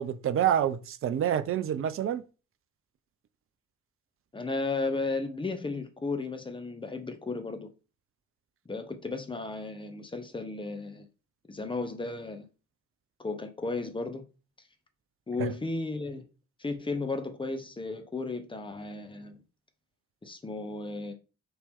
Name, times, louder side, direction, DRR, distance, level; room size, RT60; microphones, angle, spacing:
voice 1, 0.0-2.2 15.4-15.5, right 10 dB, 35° right, 0.5 m, -27 dB
voice 2, 4.3-7.7 8.7-11.1 11.5-12.5 13.2-14.2 15.3-16.3 16.6-19.4 20.2-21.1, left 3 dB, 10° left, 0.9 m, -34 dB
4.3 x 2.9 x 3.5 m
figure-of-eight pair, 45°, 41 cm